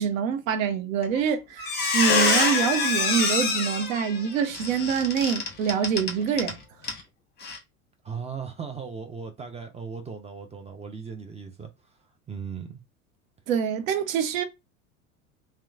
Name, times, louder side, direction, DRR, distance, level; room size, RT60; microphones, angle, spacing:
voice 1, 0.0-6.6 13.5-14.4, right 7 dB, 70° right, 0.7 m, -25 dB
Squeak, 1.0-1.3 1.6-6.5 6.8-7.0 7.4-7.6, left 4 dB, 25° left, 1.1 m, -25 dB
sound 1, 2.1-4.6 6.8-6.9, left 13 dB, 55° left, 0.5 m, -35 dB
voice 2, 8.0-11.7 12.3-12.8, right 6 dB, 15° right, 0.5 m, -37 dB
2.9 x 2.1 x 2.3 m
hypercardioid pair, 75°, 42 cm